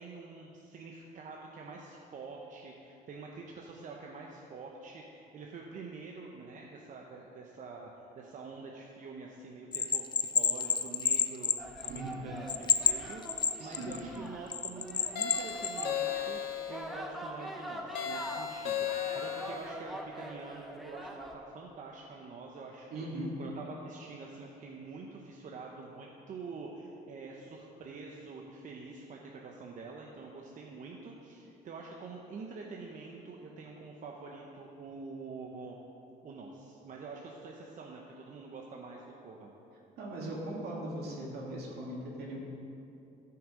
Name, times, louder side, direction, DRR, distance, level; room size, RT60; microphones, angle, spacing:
voice 1, 0.0-16.4 16.7-35.8 36.2-39.5, right 4 dB, 50° right, -1 dB, 0.9 m, -46 dB
Bell, 9.7-12.1 12.5-14.0 14.5-15.9, left 7 dB, 25° left, 0.3 m, -29 dB
sound 1, 11.6-21.3, equal, ahead, 0.8 m, -44 dB
voice 2, 11.9-12.3 13.6-13.9 22.9-23.3 40.0-42.4, right 1 dB, 70° right, -3 dB, 2.5 m, -39 dB
sound 2, 15.2-16.9 18.0-19.7, left 9 dB, 70° left, 0.9 m, -35 dB
13.0 x 5.9 x 5.1 m, 2.9 s
cardioid pair, 110°, 17 cm